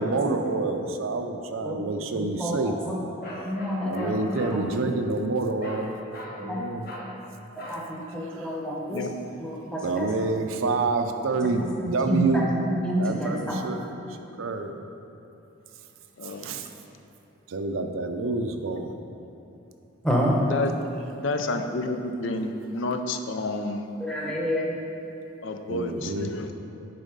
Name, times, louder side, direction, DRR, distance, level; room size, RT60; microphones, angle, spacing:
voice 1, 0.0-2.7 3.8-5.9 6.3-6.8 8.3-8.5 9.8-12.5 13.0-14.8 16.2-16.7 17.5-18.9 25.7-26.3, right 3 dB, 85° right, 5 dB, 0.6 m, -28 dB
voice 2, 2.2-3.0 3.3-4.2 6.4-6.8 7.6-9.1 9.4-10.1 12.1-12.4 12.8-13.6 20.0-20.4 24.0-24.7, equal, 5° left, -3 dB, 0.9 m, -28 dB
Bark, 3.2-4.6 5.6-5.9 6.1-6.4 6.8-7.1 7.6-7.9, equal, 45° left, 1.2 m, -39 dB
voice 3, 21.2-23.9 25.4-26.5, left 2 dB, 65° left, 6 dB, 0.5 m, -30 dB
9.1 x 4.1 x 5.2 m, 2.9 s
head